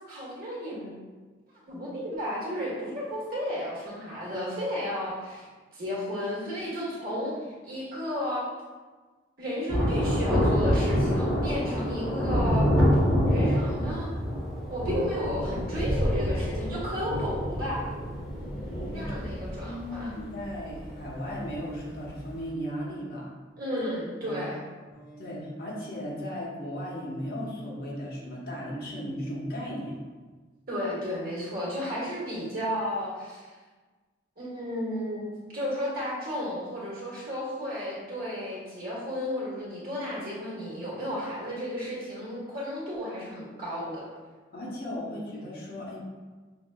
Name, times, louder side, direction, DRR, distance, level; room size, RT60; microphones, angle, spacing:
voice 1, 0.1-0.9 1.7-5.5 5.7-7.3 7.6-8.4 9.4-12.7 13.3-14.1 14.7-17.8 18.9-20.1 23.6-24.6 30.7-33.5 34.4-44.0, equal, 50° right, -5 dB, 1.4 m, -33 dB
Thunder, 9.7-21.7 21.9-22.0, equal, ahead, 1.2 m, -27 dB
voice 2, 18.7-19.2 19.6-23.3 24.2-24.4 24.9-30.0 44.5-46.0, equal, 50° left, -5 dB, 1.0 m, -36 dB
5.7 x 3.1 x 2.3 m, 1.3 s
head